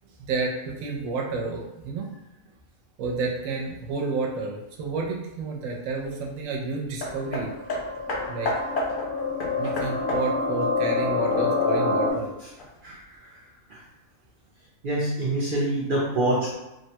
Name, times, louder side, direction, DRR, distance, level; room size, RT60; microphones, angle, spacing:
voice 1, 0.2-2.1 3.0-7.5 8.3-8.5 9.6-12.3, right 3 dB, 75° right, 0 dB, 1.0 m, -30 dB
Hammer, 7.0-11.7 12.6-12.7, left 1 dB, 55° left, 0.6 m, -32 dB
sound 1, 7.0-12.1, left 3 dB, ahead, 0.6 m, -27 dB
voice 2, 12.8-13.8 14.8-16.5, right 1 dB, 60° right, -5 dB, 0.5 m, -27 dB
3.2 x 2.1 x 2.8 m, 0.98 s
omnidirectional pair, 1.4 m